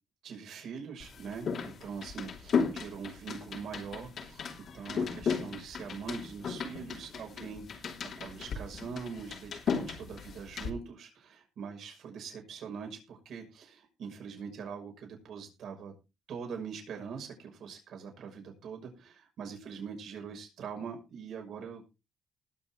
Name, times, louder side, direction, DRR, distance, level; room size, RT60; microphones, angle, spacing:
voice 1, 0.2-4.4 4.7-15.9 16.3-21.9, right 6 dB, 70° right, 2 dB, 6.1 m, -43 dB
sound 1, 1.0-10.7, left 6 dB, 60° left, 2.8 m, -36 dB
20.0 x 7.1 x 3.7 m, 0.28 s
cardioid pair, 90°, 0 cm